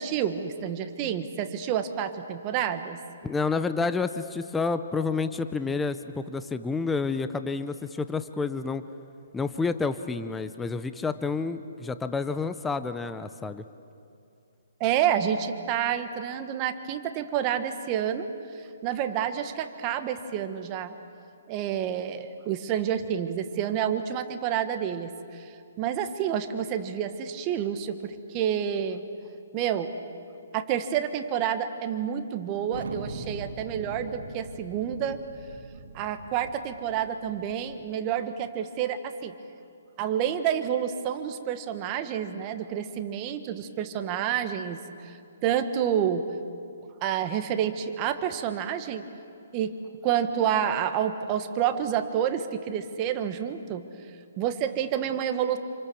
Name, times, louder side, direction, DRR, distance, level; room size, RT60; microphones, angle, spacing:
voice 1, 0.0-3.0 14.8-18.3 18.8-21.0 21.5-29.0 29.5-29.9 30.5-35.2 35.9-39.3 40.0-45.1 45.4-46.2 47.0-49.0 49.5-49.7 50.0-53.8 54.4-55.6, right 9 dB, 25° right, 8 dB, 1.4 m, -29 dB
voice 2, 3.2-8.8 9.3-13.6, left 4 dB, 5° left, 11 dB, 0.6 m, -29 dB
Thunder, 32.7-37.9, right 3 dB, 75° right, 2.9 m, -41 dB
27.5 x 26.5 x 7.1 m, 2.5 s
hypercardioid pair, 160°, 0 cm